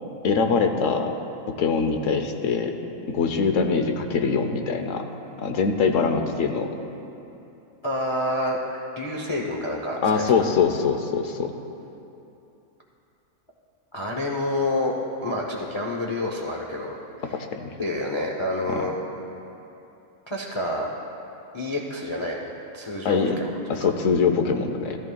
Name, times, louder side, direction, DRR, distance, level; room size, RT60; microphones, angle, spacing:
voice 1, 0.2-1.1 1.5-2.7 3.1-5.0 5.4-6.7 10.0-11.5 17.5-17.8 18.7-18.9 23.0-23.4 23.7-25.0, left 5 dB, 65° left, 5 dB, 0.9 m, -23 dB
voice 2, 7.8-10.2 13.9-14.9 15.2-17.0 17.2-17.4 17.8-18.9 20.3-20.9 21.5-23.5 23.8-23.9, left 1 dB, 30° left, -2 dB, 0.5 m, -28 dB
14.0 x 13.0 x 2.3 m, 2.9 s
omnidirectional pair, 1.6 m